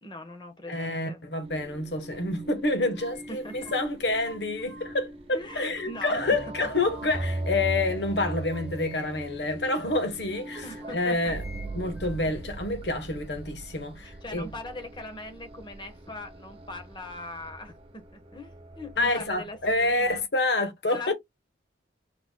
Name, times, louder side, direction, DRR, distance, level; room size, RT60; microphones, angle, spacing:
voice 1, 0.0-1.2 3.3-3.7 5.3-6.4 7.9-8.0 10.6-11.3 14.0-20.3 20.9-21.1, left 1 dB, 25° left, 1.2 m, -41 dB
voice 2, 0.7-11.4 11.7-14.5 19.0-21.1, left 2 dB, 70° left, 1.2 m, -28 dB
sound 1, 1.4-20.2, right 1 dB, 30° right, 0.8 m, -40 dB
sound 2, 2.6-5.1 5.5-6.3 6.6-8.0 8.5-9.4 9.9-10.1 10.5-12.4, equal, 15° right, 2.0 m, -52 dB
4.4 x 4.2 x 2.2 m
head